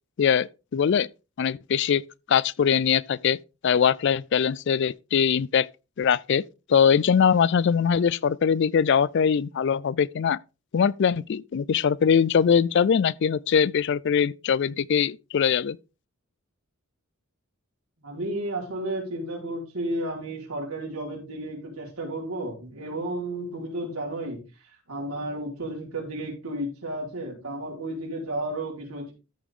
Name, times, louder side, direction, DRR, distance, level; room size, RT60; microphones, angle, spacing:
voice 1, 0.2-1.1 1.4-2.0 2.3-3.4 3.6-5.7 6.0-6.4 6.7-10.4 10.7-15.8, left 7 dB, 55° left, 0.3 m, -22 dB
voice 2, 18.0-24.4 24.9-29.1, right 1 dB, 80° right, 4.4 m, -32 dB
13.5 x 5.0 x 3.7 m
head